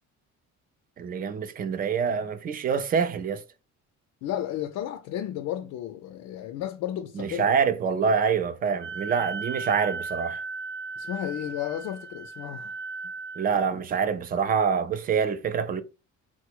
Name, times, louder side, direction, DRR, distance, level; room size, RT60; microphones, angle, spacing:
voice 1, 1.0-3.4 7.2-10.4 13.4-15.8, right 6 dB, 30° right, 0.4 m, -26 dB
voice 2, 4.2-7.5 11.0-12.7, left 11 dB, 70° left, 0.5 m, -33 dB
Wind instrument woodwind instrument, 8.8-13.5, right 3 dB, 70° right, 0.7 m, -36 dB
4.1 x 2.0 x 4.5 m
cardioid pair, 155°, 30 cm